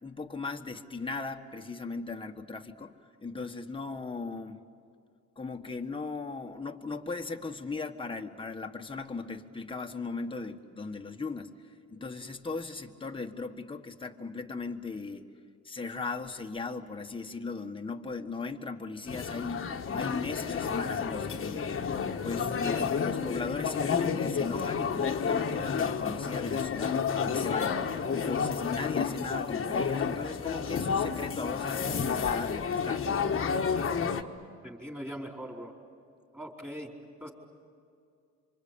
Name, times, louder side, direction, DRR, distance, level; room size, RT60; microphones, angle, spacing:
voice 1, 0.0-2.9 3.2-4.6 5.4-11.5 11.9-15.3 15.6-21.8 22.2-27.8 28.1-33.2, left 4 dB, 15° left, 3 dB, 1.6 m, -38 dB
sound 1, 19.1-34.2, left 6 dB, 45° left, 1.5 m, -30 dB
voice 2, 34.6-35.7 36.3-36.9 37.2-37.3, equal, 5° right, 0 dB, 4.5 m, -40 dB
27.0 x 25.0 x 8.8 m, 2.4 s
cardioid pair, 90°, 30 cm